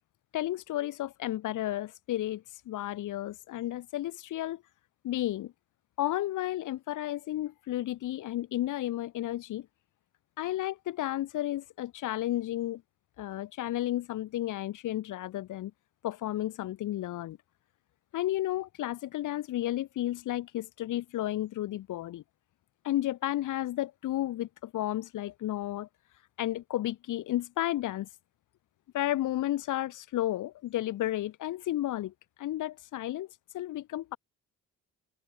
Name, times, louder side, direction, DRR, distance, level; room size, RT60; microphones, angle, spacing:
voice 1, 0.3-4.6 5.0-5.5 6.0-9.7 10.4-12.8 13.2-15.7 16.0-17.4 18.1-22.2 22.8-25.9 26.4-28.1 28.9-32.1 32.4-33.3 33.5-34.2, left 14 dB, 85° left, 5.4 m, -32 dB
open air
cardioid pair, 90°, 30 cm